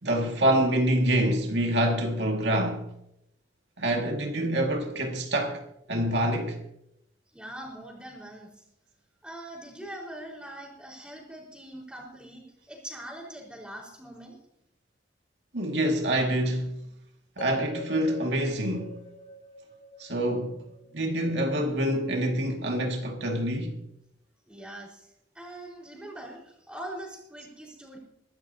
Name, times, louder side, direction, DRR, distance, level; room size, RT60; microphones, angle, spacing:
voice 1, 0.0-2.9 3.8-5.6 5.9-6.6 15.5-16.8 17.4-18.9 20.0-20.6 20.9-23.8, right 1 dB, 80° right, 2.1 m, -26 dB
voice 2, 7.3-8.5 9.2-14.4 24.5-25.1 25.3-28.0, right 1 dB, 5° right, 4.7 m, -42 dB
sound 1, 17.4-21.5, right 1 dB, 40° left, 4.7 m, -43 dB
22.5 x 13.0 x 2.8 m
head